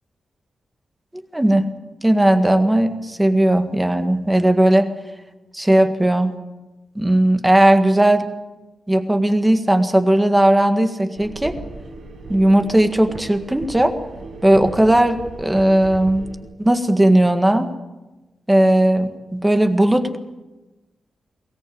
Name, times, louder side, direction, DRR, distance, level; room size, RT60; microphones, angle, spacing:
voice 1, 1.3-1.7 2.0-4.9 5.5-6.3 7.0-8.2 8.9-11.5 12.3-13.9 14.4-16.3 16.6-17.7 18.5-20.2, right 1 dB, 10° right, 7 dB, 1.7 m, -16 dB
sound 1, 11.2-16.4, right 3 dB, 75° right, 5.7 m, -36 dB
23.0 x 18.0 x 8.7 m, 1.1 s
wide cardioid pair, 140°, 0 cm